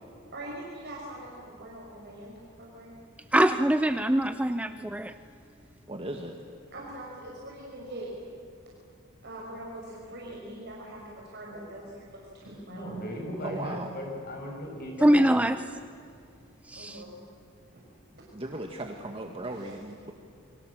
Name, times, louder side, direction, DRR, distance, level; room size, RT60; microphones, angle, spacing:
voice 1, 0.3-2.9 4.4-4.8 6.7-8.1 9.2-12.1 12.3-12.8 16.7-17.1 19.5-19.7, right 1 dB, 55° right, -4 dB, 5.6 m, -43 dB
voice 2, 3.3-5.1 15.0-15.6 16.7-17.0, right 1 dB, 5° right, 10 dB, 0.5 m, -23 dB
voice 3, 5.9-6.3 13.4-13.9 18.3-20.1, right 1 dB, 25° right, 2 dB, 1.7 m, -37 dB
voice 4, 12.7-15.5, equal, 45° left, 0 dB, 7.5 m, -37 dB
29.0 x 24.0 x 7.6 m, 2.5 s
head